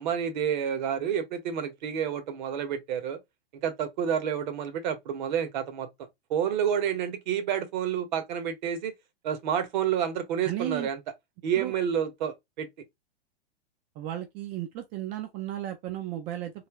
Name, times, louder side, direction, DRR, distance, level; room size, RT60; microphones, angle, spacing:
voice 1, 0.0-3.2 3.6-5.9 6.3-8.9 9.2-11.0 11.4-12.7, right 8 dB, 45° right, 1.0 m, -29 dB
voice 2, 10.4-10.9 11.6-11.7 14.0-16.5, right 12 dB, 25° right, 0.4 m, -34 dB
3.3 x 2.7 x 3.4 m
figure-of-eight pair, 105°, 31 cm